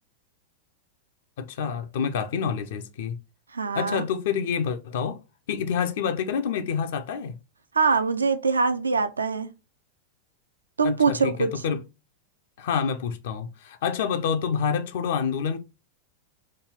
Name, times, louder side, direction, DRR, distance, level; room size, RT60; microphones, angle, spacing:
voice 1, 1.4-3.2 3.8-5.2 5.5-7.4 10.8-11.8 12.6-15.6, left 7 dB, 55° left, 0.4 m, -27 dB
voice 2, 3.5-4.1 7.7-9.5 10.8-11.6, right 4 dB, 75° right, 0.3 m, -23 dB
3.2 x 2.3 x 3.4 m
figure-of-eight pair, 90°, 0 cm